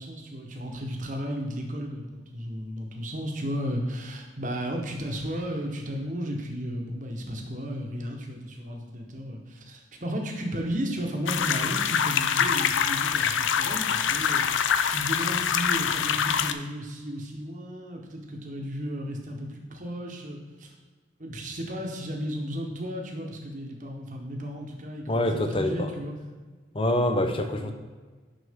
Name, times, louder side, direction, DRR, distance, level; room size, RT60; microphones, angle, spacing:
voice 1, 0.0-14.6 14.9-20.7 21.2-26.2 27.6-27.7, equal, 40° right, 2 dB, 1.1 m, -34 dB
sound 1, 11.3-16.5, left 7 dB, 85° left, 0.4 m, -25 dB
voice 2, 25.1-25.9 26.7-27.7, left 1 dB, 30° left, 6 dB, 0.6 m, -25 dB
6.5 x 6.1 x 3.6 m, 1.4 s
head